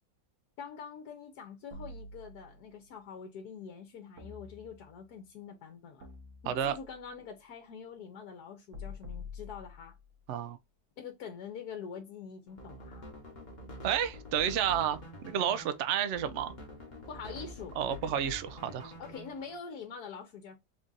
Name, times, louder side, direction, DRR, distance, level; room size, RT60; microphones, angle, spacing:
voice 1, 0.6-6.1 6.4-10.0 11.0-13.1 17.1-17.7 19.0-20.6, left 6 dB, 75° left, 1.3 m, -45 dB
sound 1, 1.7-2.8 4.2-5.1 6.0-7.1 8.7-10.1, left 3 dB, 55° right, 1.2 m, -47 dB
voice 2, 6.5-6.8 10.3-10.6 13.8-16.6 17.8-18.9, right 9 dB, 70° right, 0.7 m, -31 dB
sound 2, 12.5-19.6, left 1 dB, 35° left, 1.0 m, -47 dB
3.7 x 2.5 x 3.9 m
omnidirectional pair, 1.7 m